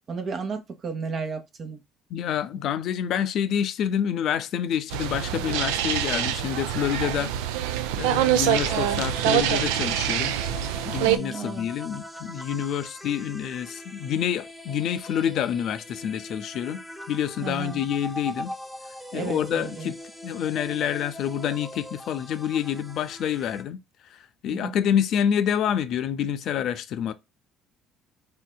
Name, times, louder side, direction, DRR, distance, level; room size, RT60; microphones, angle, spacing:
voice 1, 0.1-1.8 11.1-11.7 17.4-17.8 19.1-19.9 24.5-24.8, right 5 dB, 45° right, 0.9 m, -33 dB
voice 2, 2.1-7.3 8.0-10.4 10.8-16.8 17.1-18.5 19.1-20.0 20.2-23.8 24.1-27.1, left 9 dB, 60° left, 0.4 m, -27 dB
sound 1, 4.9-11.2, right 11 dB, 85° right, 0.3 m, -25 dB
sound 2, 8.7-23.6, left 1 dB, 5° left, 0.8 m, -41 dB
3.5 x 2.7 x 2.2 m
supercardioid pair, 70°, 0 cm